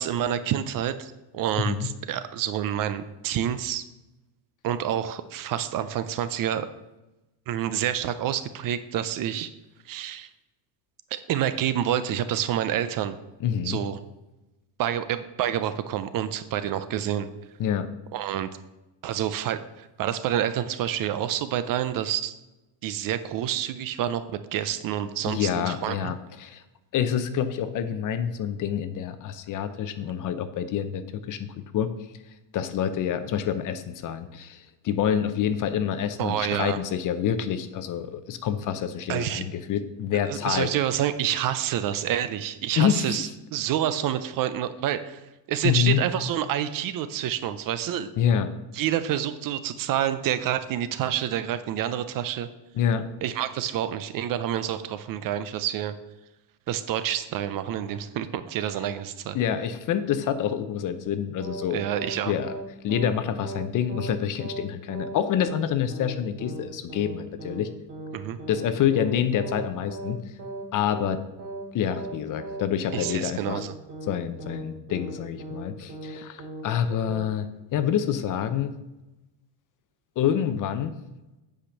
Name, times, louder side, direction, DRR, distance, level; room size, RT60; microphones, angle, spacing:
voice 1, 0.0-3.9 4.6-6.7 7.5-9.5 9.9-10.3 11.1-13.2 13.6-14.0 14.8-17.3 18.1-18.5 19.0-22.4 22.8-26.1 36.2-36.8 39.1-39.4 40.3-45.2 45.5-48.1 48.7-52.5 53.2-56.0 56.7-59.4 61.7-62.3 68.1-68.4 72.9-73.7, right 10 dB, 45° right, 12 dB, 0.6 m, -28 dB
voice 2, 1.6-1.9 13.4-13.8 17.6-17.9 25.3-26.6 26.9-31.9 32.5-40.7 42.7-43.2 45.6-46.0 48.2-48.5 52.7-53.1 59.3-61.8 62.3-62.6 62.8-67.7 68.5-70.2 70.7-71.2 71.7-73.6 74.1-78.8 80.2-80.9, left 9 dB, 40° left, 11 dB, 0.7 m, -27 dB
sound 1, 61.4-61.6 61.9-62.1 62.4-62.6 62.9-63.1 63.4-63.6 63.9-64.1 64.4-64.6 64.9-65.1 65.4-65.6 65.9-66.1 66.4-66.6 66.9-67.1 67.4-67.6 67.9-68.1 68.4-68.6 68.9-69.1 69.4-69.6 69.9-70.1 70.4-70.6 70.9-71.1 71.4-71.6 71.9-72.1 72.4-72.6 72.9-73.1 73.4-73.6 73.9-74.1 74.4-74.6 74.9-75.1 75.4-75.6 75.9-76.1 76.4-76.6 76.9-77.1, right 2 dB, 30° right, 2.9 m, -37 dB
8.7 x 5.1 x 6.5 m, 1.0 s
cardioid pair, 145°, 49 cm